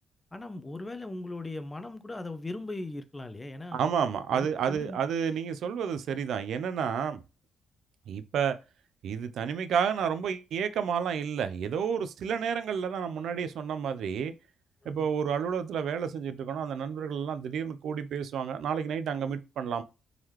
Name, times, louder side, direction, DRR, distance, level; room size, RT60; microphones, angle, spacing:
voice 1, 0.3-3.8 4.3-5.0 14.8-15.1, left 2 dB, 20° left, 0.5 m, -39 dB
voice 2, 3.7-7.2 8.1-8.6 9.0-14.3 14.9-19.8, right 7 dB, 70° right, 0.4 m, -30 dB
3.7 x 2.9 x 3.1 m
cardioid pair, 90°, 0 cm